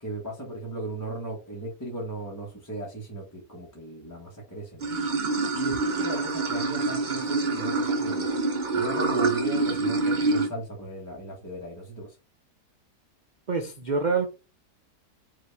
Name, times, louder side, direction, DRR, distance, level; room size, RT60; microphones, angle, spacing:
voice 1, 0.0-4.9 5.5-8.3 8.7-12.1, right 1 dB, 15° left, 1.1 m, -36 dB
Water / Sink (filling or washing), 4.8-10.5, right 3 dB, 35° right, 0.9 m, -26 dB
voice 2, 13.5-14.3, right 4 dB, 70° right, 0.4 m, -26 dB
5.0 x 2.9 x 3.4 m
omnidirectional pair, 1.7 m